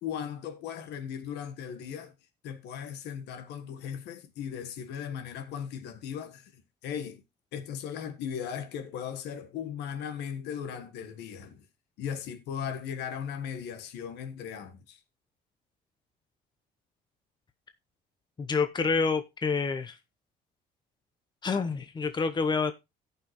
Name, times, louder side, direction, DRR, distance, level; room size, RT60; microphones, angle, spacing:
voice 1, 0.0-2.1 2.4-7.2 7.5-11.7 12.0-15.0, left 8 dB, 85° left, 1.5 m, -37 dB
voice 2, 18.4-19.9 21.4-22.7, left 4 dB, 25° left, 0.9 m, -28 dB
17.0 x 5.7 x 3.1 m
cardioid pair, 110°, 17 cm